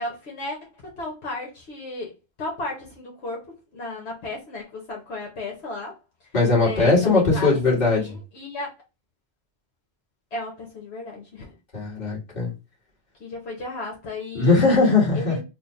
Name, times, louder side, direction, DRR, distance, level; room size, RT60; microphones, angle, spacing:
voice 1, 0.0-2.1 2.4-6.0 6.6-7.6 8.0-8.7 10.3-11.5 13.2-14.6 15.1-15.4, left 2 dB, 75° left, 1.2 m, -34 dB
voice 2, 6.3-8.2 11.7-12.5 14.3-15.4, left 3 dB, 40° left, 1.7 m, -19 dB
3.3 x 2.0 x 4.1 m
omnidirectional pair, 1.1 m